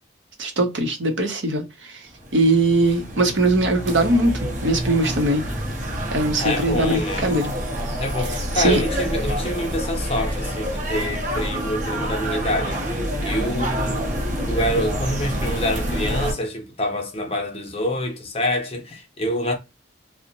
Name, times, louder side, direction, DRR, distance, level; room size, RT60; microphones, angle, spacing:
voice 1, 0.4-1.9 2.3-4.3 4.6-5.4 6.1-7.5 8.5-8.8, right 2 dB, 75° right, 0.7 m, -20 dB
sound 1, 2.1-16.3, equal, 40° right, 0.6 m, -27 dB
voice 2, 6.4-7.3 8.0-14.1 14.5-19.5, left 1 dB, 30° left, 0.6 m, -26 dB
2.6 x 2.0 x 2.7 m
head